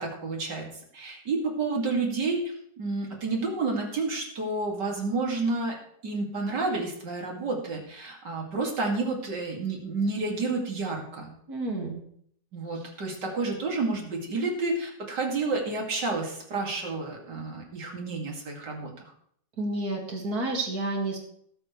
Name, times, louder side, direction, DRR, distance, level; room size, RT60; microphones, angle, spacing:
voice 1, 0.0-5.7 6.0-11.3 12.5-19.1, right 3 dB, 80° right, 0 dB, 3.0 m, -30 dB
voice 2, 11.5-12.0 19.6-21.2, right 2 dB, 60° right, 1 dB, 2.8 m, -30 dB
19.0 x 8.0 x 3.3 m, 0.66 s
omnidirectional pair, 1.9 m